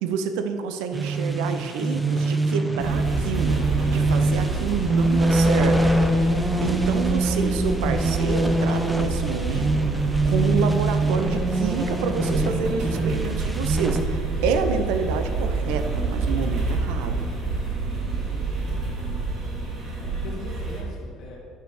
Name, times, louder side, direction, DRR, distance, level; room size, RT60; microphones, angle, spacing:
voice 1, 0.0-3.6 3.9-5.9 6.6-9.8 10.2-17.2, right 6 dB, 85° right, 8 dB, 0.5 m, -28 dB
sound 1, 0.9-14.0, right 1 dB, 5° right, 0.6 m, -24 dB
sound 2, 2.8-20.8, right 3 dB, 50° right, 2.0 m, -28 dB
voice 2, 18.3-18.7 19.9-21.4, left 4 dB, 70° left, -5 dB, 1.7 m, -41 dB
9.5 x 3.3 x 6.3 m, 2.4 s
cardioid pair, 115°, 0 cm